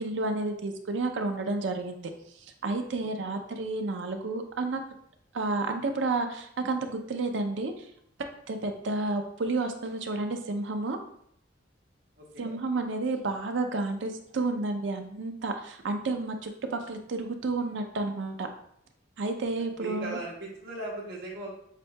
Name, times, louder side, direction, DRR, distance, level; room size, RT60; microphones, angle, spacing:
voice 1, 0.0-2.1 2.6-4.8 5.3-7.9 8.5-11.0 12.4-18.5 19.2-20.2, right 3 dB, 75° right, 6 dB, 0.5 m, -31 dB
voice 2, 3.0-3.4 12.2-12.5 19.8-21.5, right 2 dB, 55° right, -4 dB, 1.2 m, -39 dB
7.4 x 2.7 x 2.2 m, 0.70 s
head